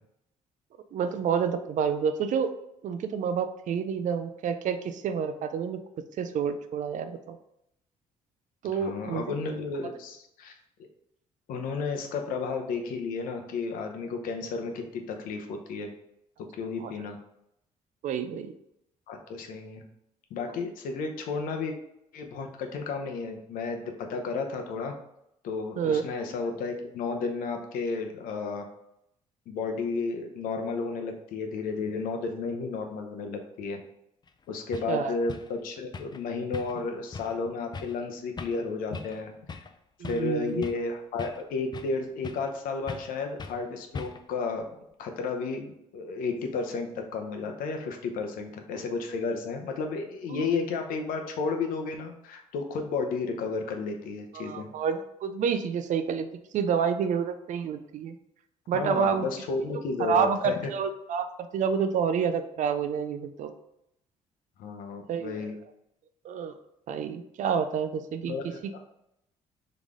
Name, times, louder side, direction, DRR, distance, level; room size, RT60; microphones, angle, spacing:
voice 1, 0.9-2.5 2.8-5.8 6.2-7.4 8.6-9.4 16.8-16.9 18.0-18.5 25.8-26.0 34.9-35.1 40.0-40.6 50.3-50.5 54.3-56.3 56.5-58.2 58.7-59.3 60.0-61.3 61.5-63.5 65.1-65.5 66.2-66.5 66.9-68.3 68.6-68.7, right 7 dB, 60° right, 9 dB, 0.5 m, -28 dB
voice 2, 8.7-10.5 11.5-15.9 16.6-17.2 19.1-19.8 20.3-21.7 22.1-24.9 25.4-28.7 29.5-33.8 34.5-39.6 40.1-54.7 58.7-60.5 64.6-65.6 68.3-68.8, left 4 dB, 80° left, 4 dB, 0.8 m, -32 dB
sound 1, 34.3-34.4 34.7-34.9 35.3-35.5 35.9-36.2 36.5-36.9 37.1-37.4 37.7-38.0 38.4-38.6 38.9-39.2 39.5-39.7 40.0-40.9 41.2-42.0 42.2-42.5 42.9-43.1 43.4-43.6 43.9-44.3, left 4 dB, 30° left, 0.4 m, -40 dB
3.9 x 3.3 x 3.7 m, 0.79 s
supercardioid pair, 70°, 14 cm